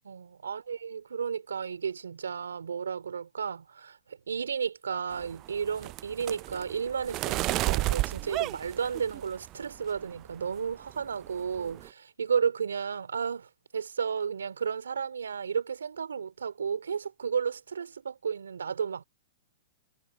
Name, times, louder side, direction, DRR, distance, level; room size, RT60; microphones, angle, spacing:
voice 1, 0.0-4.0 4.3-19.0, right 6 dB, 80° right, 2.7 m, -33 dB
sound 1, 5.1-9.5 10.0-10.4 10.7-11.0 11.2-11.9, right 18 dB, 35° right, 0.3 m, -32 dB
hypercardioid pair, 115°, 0 cm